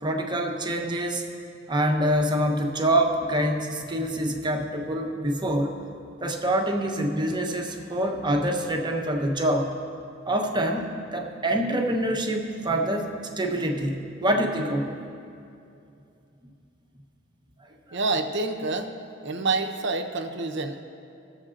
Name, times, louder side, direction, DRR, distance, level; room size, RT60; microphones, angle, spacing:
voice 1, 0.0-1.2 1.7-5.8 6.2-9.7 10.2-14.9 17.6-18.0, right 1 dB, 20° right, 2 dB, 0.8 m, -26 dB
voice 2, 17.9-18.9 19.2-20.8, right 3 dB, 60° right, 6 dB, 0.8 m, -27 dB
21.0 x 7.3 x 2.5 m, 2.6 s
head